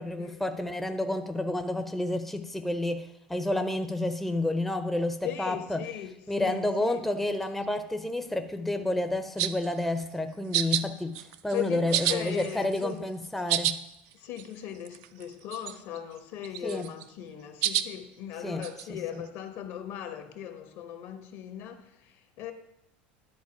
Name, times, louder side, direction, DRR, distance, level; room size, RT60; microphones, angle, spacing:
voice 1, 0.0-5.9 6.3-13.8 16.6-16.9 18.4-19.2, left 1 dB, 5° left, 0.6 m, -30 dB
voice 2, 5.2-7.0 11.5-13.1 14.1-22.5, left 10 dB, 60° left, 1.1 m, -38 dB
sound 1, 9.4-9.7 10.5-10.8 11.1-11.6 11.9-12.9 13.2-13.8 14.1-14.2 14.4-14.5 14.8-15.2 15.5-16.0 16.4-17.0 17.6-17.9 18.6-18.8, right 12 dB, 65° right, 0.5 m, -29 dB
10.5 x 4.1 x 6.0 m
supercardioid pair, 100°, 6 cm